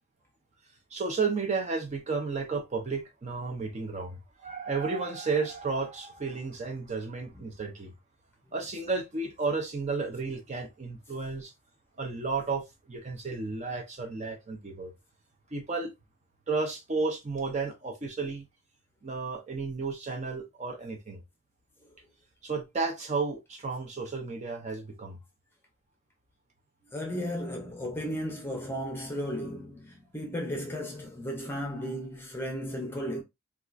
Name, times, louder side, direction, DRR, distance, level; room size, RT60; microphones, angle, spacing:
voice 1, 0.9-7.9 8.5-11.5 12.0-12.6 12.9-14.9 15.5-15.9 16.5-18.5 19.0-21.2 22.4-25.2, right 4 dB, 35° right, 0.5 m, -32 dB
voice 2, 26.9-33.2, equal, 10° left, 0.6 m, -35 dB
4.2 x 2.3 x 2.4 m
head